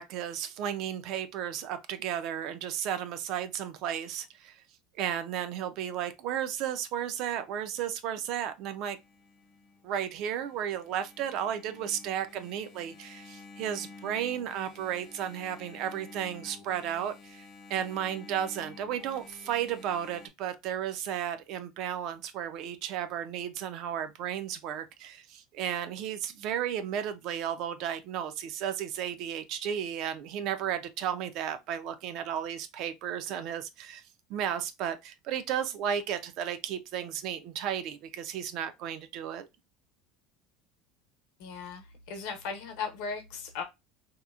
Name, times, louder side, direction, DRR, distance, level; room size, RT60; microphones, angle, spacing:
voice 1, 0.0-4.6 5.0-9.0 9.8-34.0 34.3-39.5, right 9 dB, 50° right, 0.4 m, -34 dB
Engine, 8.9-20.3, left 3 dB, 35° left, 0.4 m, -51 dB
voice 2, 41.4-43.6, left 5 dB, 70° left, 0.8 m, -37 dB
2.8 x 2.0 x 2.3 m
cardioid pair, 155°, 0 cm